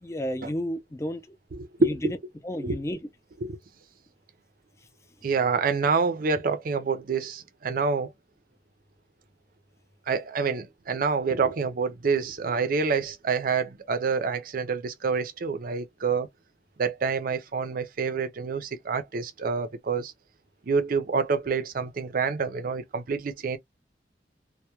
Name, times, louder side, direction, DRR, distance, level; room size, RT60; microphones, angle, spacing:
voice 1, 0.0-1.4 1.8-2.0 2.4-3.0, equal, 15° left, 0.4 m, -32 dB
voice 2, 1.5-2.1 2.6-2.8 3.4-3.6 5.2-8.1 10.1-16.3 16.8-20.1 20.7-23.6, right 5 dB, 55° right, 0.5 m, -27 dB
2.2 x 2.1 x 2.8 m
head